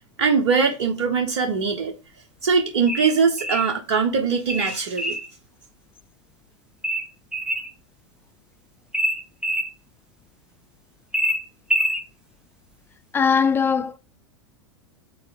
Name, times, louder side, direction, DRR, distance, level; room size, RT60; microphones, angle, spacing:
voice 1, 0.2-1.9 2.4-5.2, right 5 dB, 60° right, 1.0 m, -21 dB
sound 1, 2.9-3.7 4.5-5.3 6.8-7.7 8.9-9.7 11.1-12.0, equal, 5° right, 0.9 m, -25 dB
voice 2, 13.1-14.0, left 6 dB, 15° left, 0.3 m, -20 dB
4.6 x 4.2 x 5.2 m
figure-of-eight pair, 90°, 15 cm